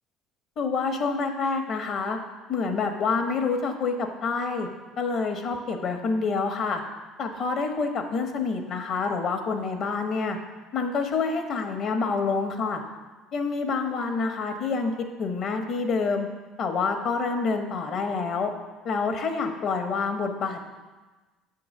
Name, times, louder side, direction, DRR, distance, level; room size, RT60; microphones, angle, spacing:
voice 1, 0.6-2.2 2.5-4.7 5.0-6.8 7.2-10.4 10.7-12.8 13.3-14.9 15.2-16.3 16.6-18.5 18.8-20.7, left 4 dB, 55° left, 4 dB, 0.9 m, -27 dB
7.1 x 3.8 x 6.4 m, 1.2 s
supercardioid pair, 100°, 0 cm